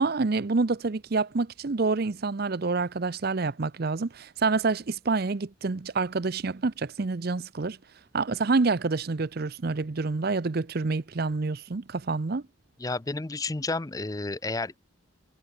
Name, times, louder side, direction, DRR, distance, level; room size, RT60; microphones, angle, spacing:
voice 1, 0.0-7.8 8.1-12.4, right 3 dB, 45° right, 0.6 m, -27 dB
voice 2, 12.8-14.8, left 3 dB, 15° left, 0.5 m, -31 dB
head